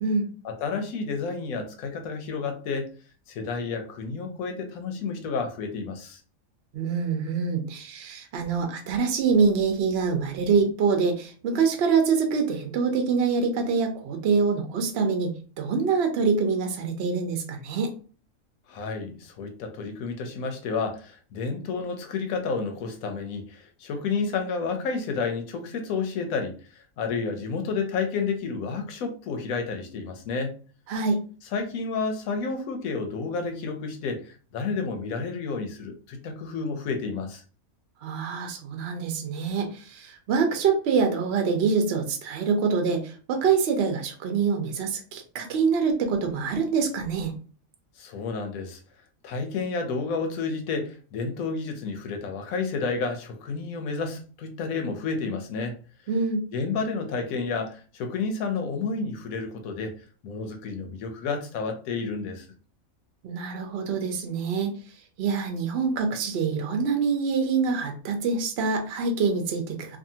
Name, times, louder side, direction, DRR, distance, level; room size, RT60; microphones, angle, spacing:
voice 1, 0.4-2.9 3.3-6.2 18.7-26.6 27.0-30.5 31.5-37.4 48.0-48.8 49.2-55.8 56.5-60.0 60.2-62.5, left 4 dB, 85° left, 1.1 m, -30 dB
voice 2, 6.7-17.9 30.9-31.2 38.0-47.3 56.1-56.4 63.2-64.7 65.2-70.0, right 5 dB, 60° right, 0.7 m, -25 dB
2.6 x 2.5 x 2.7 m
omnidirectional pair, 1.4 m